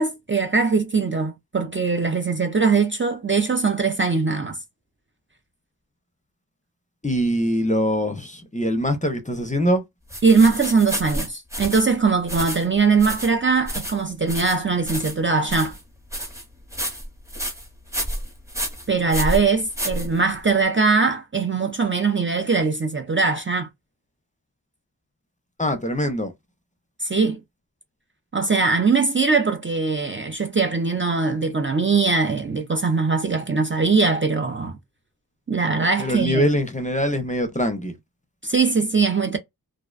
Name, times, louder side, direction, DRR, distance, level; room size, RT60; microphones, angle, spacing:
voice 1, 0.0-4.6 10.2-15.8 18.9-23.7 27.0-27.4 28.3-34.8 35.5-36.5 38.4-39.4, right 4 dB, 30° right, 0.4 m, -21 dB
voice 2, 7.0-9.8 25.6-26.3 36.0-37.9, equal, 20° left, 0.5 m, -23 dB
sound 1, 10.1-20.6, equal, 10° right, 0.8 m, -31 dB
2.4 x 2.1 x 2.4 m
wide cardioid pair, 40°, 39 cm